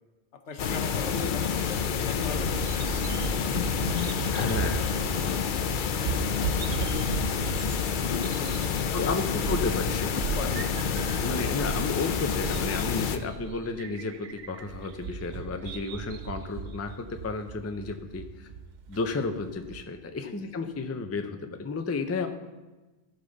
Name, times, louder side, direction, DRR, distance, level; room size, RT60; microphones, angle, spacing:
voice 1, 0.3-3.5 4.4-6.1 8.2-9.4 9.6-9.7 10.0-10.8 20.2-20.5, left 4 dB, 85° left, 6 dB, 1.3 m, -41 dB
sound 1, 0.6-13.2, left 7 dB, 55° left, 0.7 m, -28 dB
Bird vocalization bird call bird song, 1.7-19.8, right 6 dB, 55° right, 0.5 m, -37 dB
voice 2, 4.3-4.8 8.9-10.2 10.4-10.7 11.2-18.5 18.9-22.3, left 3 dB, 20° left, 6 dB, 0.4 m, -32 dB
15.0 x 5.6 x 3.9 m, 1.2 s
omnidirectional pair, 1.2 m